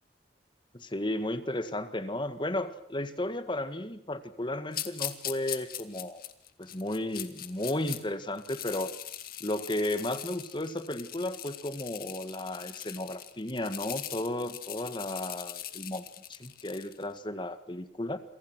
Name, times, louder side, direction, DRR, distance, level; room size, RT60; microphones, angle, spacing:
voice 1, 0.7-6.2 6.6-8.9 9.4-16.0 16.3-18.2, left 1 dB, 25° left, 11 dB, 1.8 m, -34 dB
sound 1, 4.7-8.0 8.4-17.0, left 12 dB, 50° left, 2.2 m, -41 dB
28.5 x 25.0 x 6.2 m, 0.71 s
head